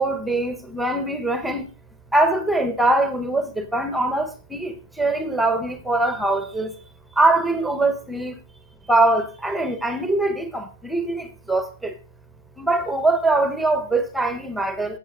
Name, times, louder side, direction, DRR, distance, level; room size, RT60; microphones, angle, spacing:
voice 1, 0.0-1.7 2.1-6.8 7.2-8.4 8.9-11.9 12.6-15.0, right 2 dB, ahead, 1.1 m, -22 dB
17.0 x 8.5 x 3.8 m
hypercardioid pair, 155°, 0 cm